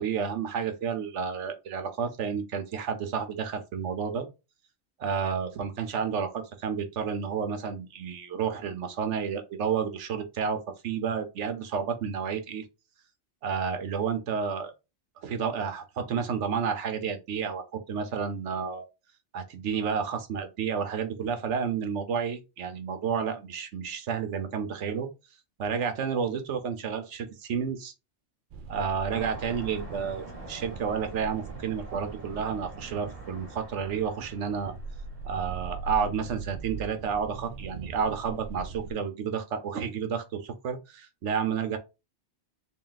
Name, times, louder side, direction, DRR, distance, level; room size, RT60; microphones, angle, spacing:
voice 1, 0.0-4.3 5.0-12.6 13.4-14.7 15.2-18.8 19.3-25.1 25.6-27.9 28.7-34.7 35.2-41.8, right 6 dB, 80° right, 1.1 m, -31 dB
sound 1, 28.5-38.9, right 4 dB, 60° right, 0.6 m, -41 dB
sound 2, 29.1-37.0, right 1 dB, 30° right, 1.2 m, -47 dB
3.9 x 2.3 x 3.9 m
omnidirectional pair, 1.2 m